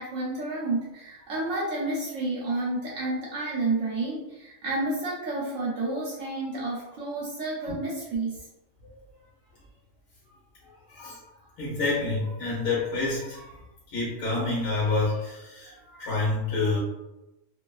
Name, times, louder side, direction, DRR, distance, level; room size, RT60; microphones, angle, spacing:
voice 1, 0.0-8.5, right 2 dB, 70° right, -5 dB, 0.9 m, -30 dB
voice 2, 11.6-13.6 13.9-16.8, left 3 dB, 60° left, -6 dB, 1.1 m, -28 dB
2.5 x 2.3 x 2.3 m, 0.98 s
omnidirectional pair, 1.4 m